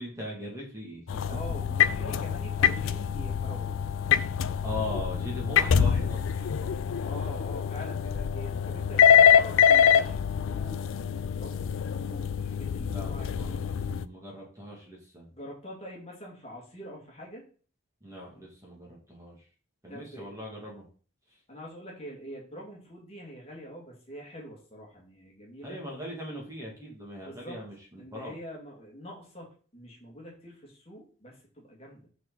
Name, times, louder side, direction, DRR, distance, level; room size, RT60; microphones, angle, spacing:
voice 1, 0.0-1.4 4.6-6.9 12.8-15.3 18.0-19.4 19.8-20.8 25.6-28.4, left 1 dB, 15° right, -2 dB, 2.2 m, -40 dB
sound 1, 1.1-14.1, left 8 dB, 80° left, 0.4 m, -25 dB
voice 2, 1.2-3.8 7.0-13.9 15.3-17.4 19.9-20.3 21.5-25.8 27.2-27.6 28.0-32.0, equal, 30° left, -2 dB, 2.3 m, -45 dB
6.1 x 6.1 x 4.0 m, 0.40 s
head